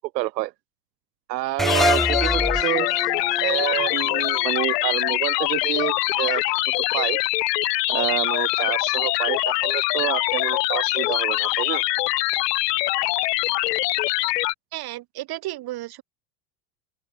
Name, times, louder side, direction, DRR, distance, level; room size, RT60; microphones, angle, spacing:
voice 1, 0.1-0.5 1.3-2.9 3.4-6.4 6.9-7.2 7.9-11.8, right 18 dB, 80° right, 1.8 m, -28 dB
sound 1, 1.6-4.9, equal, ahead, 3.6 m, -26 dB
sound 2, 1.7-14.5, left 22 dB, 75° left, 1.7 m, -23 dB
voice 2, 14.7-16.0, right 16 dB, 50° right, 3.1 m, -33 dB
open air
supercardioid pair, 100°, 49 cm